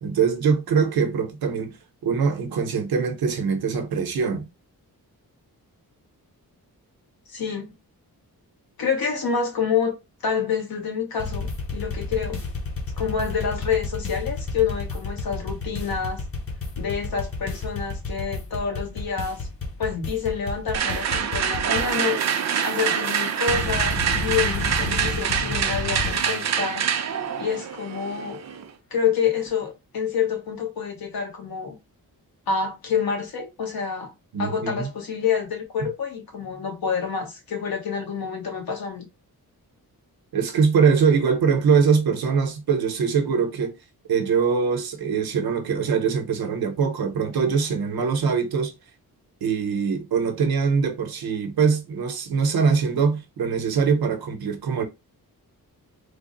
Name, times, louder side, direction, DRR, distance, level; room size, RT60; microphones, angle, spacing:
voice 1, 0.0-1.8 2.0-4.5 34.3-34.9 35.8-35.9 40.3-43.7 44.1-48.7 49.4-54.8, right 6 dB, 80° right, 0.8 m, -22 dB
voice 2, 7.3-7.7 8.8-9.9 10.2-12.4 13.0-16.2 16.8-19.5 19.8-22.4 22.6-26.9 27.4-28.4 28.9-31.8 32.5-34.1 34.4-39.1, left 6 dB, 75° left, 1.1 m, -27 dB
sound 1, 11.2-26.8, left 3 dB, 40° left, 0.9 m, -32 dB
sound 2, 20.7-28.7, right 8 dB, 50° right, 0.5 m, -25 dB
3.4 x 2.0 x 3.8 m
wide cardioid pair, 155°, 36 cm